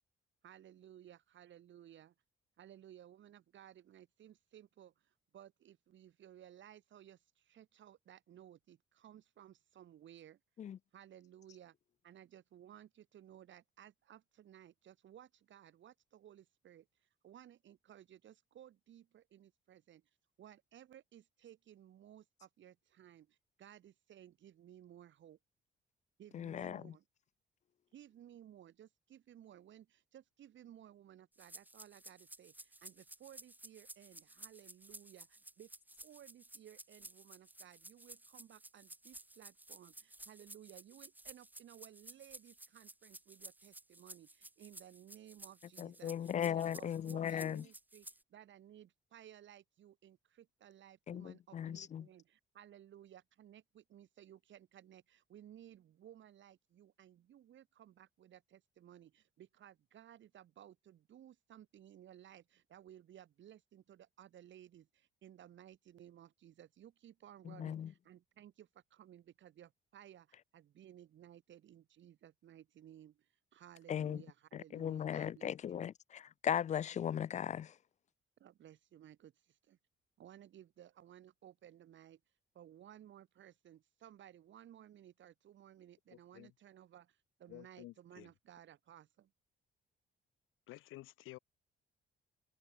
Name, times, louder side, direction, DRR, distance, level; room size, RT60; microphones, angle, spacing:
voice 1, 0.4-2.1 2.6-4.9 5.3-10.4 10.9-11.7 12.0-16.9 17.2-20.0 20.4-25.4 26.2-27.0 27.9-35.7 36.0-75.9 78.4-79.8 80.2-82.2 82.5-89.3, right 11 dB, 70° right, 5.0 m, -58 dB
voice 2, 26.3-26.9 45.8-47.6 51.1-52.1 67.4-67.9 73.9-74.2 74.5-77.7, left 9 dB, 35° left, 0.4 m, -38 dB
sound 1, 31.4-48.2, right 2 dB, 10° right, 0.9 m, -55 dB
voice 3, 86.1-86.5 87.5-88.3 90.7-91.4, left 17 dB, 90° left, 1.0 m, -53 dB
cardioid pair, 90°, 20 cm